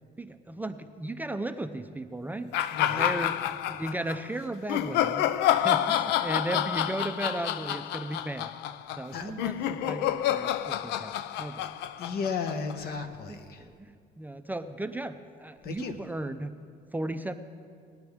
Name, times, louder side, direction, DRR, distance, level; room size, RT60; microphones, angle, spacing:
voice 1, 0.2-2.5 2.9-5.3 5.5-8.5 9.0-11.1 11.4-11.8 13.3-13.4 13.7-16.5 16.9-17.3, right 1 dB, 10° right, 8 dB, 0.4 m, -35 dB
sound 1, 2.5-4.2 4.7-13.0, left 11 dB, 85° left, 0.4 m, -28 dB
voice 2, 2.7-3.1 9.1-9.4 12.0-13.6 15.6-16.0, left 5 dB, 65° left, 7 dB, 1.1 m, -34 dB
18.5 x 9.6 x 3.5 m, 2.2 s
cardioid pair, 110°, 17 cm